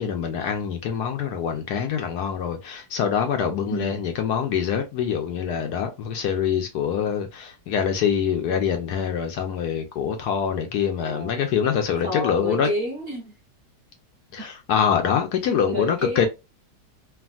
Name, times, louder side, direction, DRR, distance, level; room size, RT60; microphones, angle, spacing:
voice 1, 0.0-12.7 14.3-16.3, left 7 dB, 75° left, 1.1 m, -25 dB
voice 2, 3.7-4.0 11.0-11.4 12.0-13.3 14.4-14.5 15.7-16.3, equal, 40° right, 1.2 m, -30 dB
3.4 x 2.4 x 2.3 m
omnidirectional pair, 1.9 m